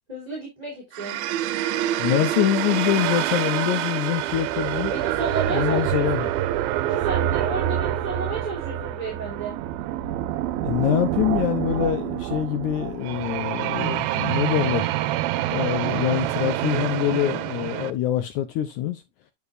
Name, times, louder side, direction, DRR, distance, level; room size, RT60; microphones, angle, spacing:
voice 1, 0.1-1.2 4.9-6.3 6.8-9.6, right 3 dB, 10° right, 2.9 m, -32 dB
sound 1, 0.9-17.9, right 13 dB, 90° right, 2.5 m, -26 dB
voice 2, 2.0-4.9 5.5-6.3 10.6-14.9 15.5-19.0, left 12 dB, 75° left, 1.8 m, -25 dB
8.5 x 7.1 x 2.5 m
omnidirectional pair, 4.2 m